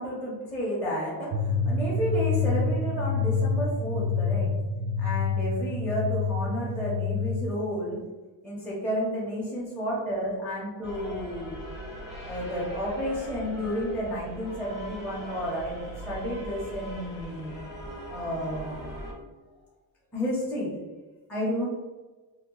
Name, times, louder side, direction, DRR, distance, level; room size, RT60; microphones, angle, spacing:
voice 1, 0.0-4.6 5.0-8.0 8.4-11.6 12.2-17.5 18.1-18.8 20.1-20.8 21.3-21.7, equal, 5° left, -8 dB, 0.7 m, -31 dB
sound 1, 1.3-7.5, left 4 dB, 55° right, 0.5 m, -27 dB
sound 2, 10.8-19.1, equal, 25° left, 1.0 m, -40 dB
2.8 x 2.2 x 3.7 m, 1.3 s
cardioid pair, 160°, 41 cm